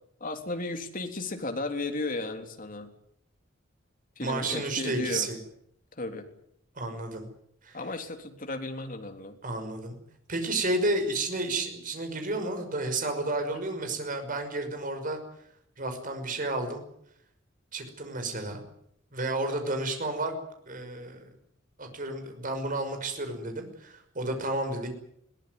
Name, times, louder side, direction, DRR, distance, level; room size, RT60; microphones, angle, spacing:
voice 1, 0.2-2.9 4.2-5.3 6.0-6.2 7.7-9.4, left 2 dB, 45° left, 6 dB, 3.4 m, -34 dB
voice 2, 4.2-5.4 6.8-7.3 7.6-7.8 9.4-9.9 10.3-15.2 15.8-16.8 17.7-18.6 19.1-20.3 20.7-21.3 21.8-24.9, right 2 dB, 45° right, 6 dB, 5.8 m, -31 dB
21.5 x 18.5 x 9.6 m, 0.73 s
head